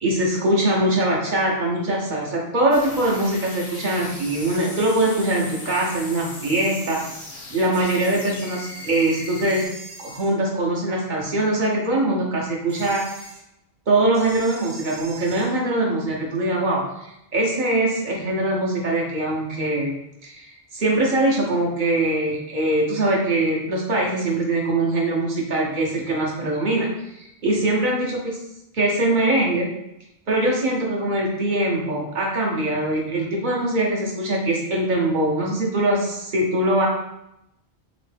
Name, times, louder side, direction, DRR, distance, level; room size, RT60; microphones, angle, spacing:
voice 1, 0.0-7.0 7.5-9.7 10.0-13.0 13.9-19.9 20.2-28.2 28.7-29.7 30.3-36.9, right 1 dB, 50° right, -2 dB, 0.9 m, -22 dB
sound 1, 2.7-9.7, left 2 dB, 90° left, 1.0 m, -38 dB
sound 2, 9.5-10.3 12.7-13.4 14.1-15.5, right 3 dB, 85° right, 1.0 m, -41 dB
3.1 x 3.0 x 3.3 m, 0.84 s
omnidirectional pair, 1.1 m